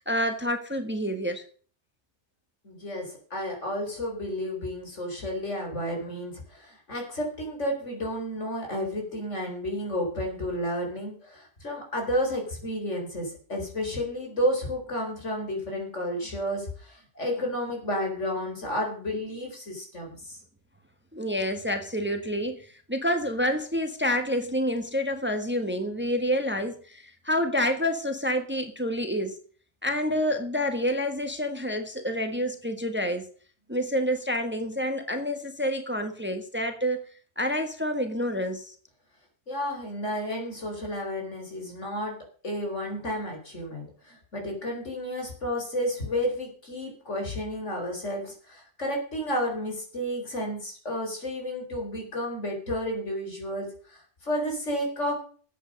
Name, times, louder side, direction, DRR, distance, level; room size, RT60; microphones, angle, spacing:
voice 1, 0.1-1.4 21.1-29.4 29.8-33.3 33.7-37.0 37.4-38.7, equal, 10° right, 1.5 m, -28 dB
voice 2, 2.6-20.4 39.5-42.2 42.4-55.2, equal, 90° left, 4.5 m, -31 dB
13.5 x 8.5 x 6.4 m
omnidirectional pair, 1.2 m